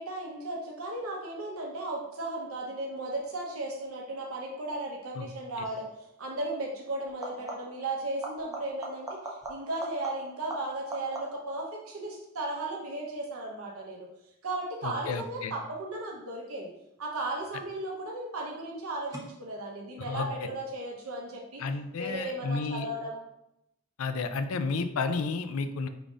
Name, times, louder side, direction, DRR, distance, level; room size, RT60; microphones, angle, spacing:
voice 1, 0.0-14.1 14.4-16.7 17.0-21.6 22.0-23.2, right 2 dB, 85° right, 0 dB, 0.9 m, -35 dB
sound 1, 5.6-5.9 7.1-7.9 8.2-11.6 17.0-17.6 19.1-19.2, right 2 dB, 15° right, 0.6 m, -41 dB
voice 2, 14.8-15.5 20.1-20.3 21.6-22.9 24.0-25.9, left 4 dB, 85° left, 9 dB, 0.4 m, -31 dB
5.0 x 3.9 x 2.5 m, 0.82 s
head